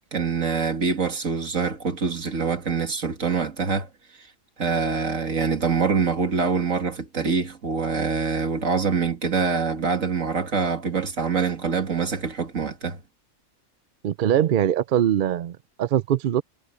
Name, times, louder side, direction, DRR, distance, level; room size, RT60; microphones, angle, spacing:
voice 1, 0.1-3.9 4.2-4.3 4.6-13.0, right 5 dB, 75° right, 2.6 m, -25 dB
voice 2, 14.0-16.4, right 10 dB, 60° right, 0.6 m, -22 dB
omnidirectional pair, 1.4 m